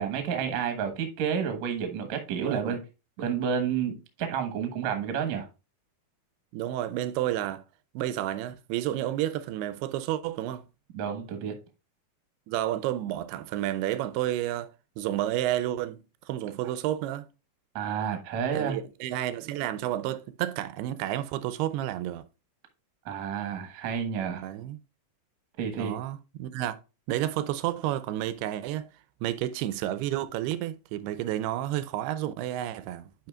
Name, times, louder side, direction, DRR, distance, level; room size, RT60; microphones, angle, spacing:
voice 1, 0.0-2.8 3.2-5.5 10.9-11.6 17.8-18.8 23.1-24.4 25.6-25.9, right 7 dB, 60° right, 1.9 m, -30 dB
voice 2, 2.4-2.8 6.5-7.6 7.9-10.7 12.5-14.7 15.0-17.3 18.5-22.3 24.4-24.8 25.8-26.8 27.1-28.9 29.2-33.3, right 13 dB, 85° right, 2.5 m, -31 dB
10.5 x 5.0 x 2.4 m
omnidirectional pair, 4.6 m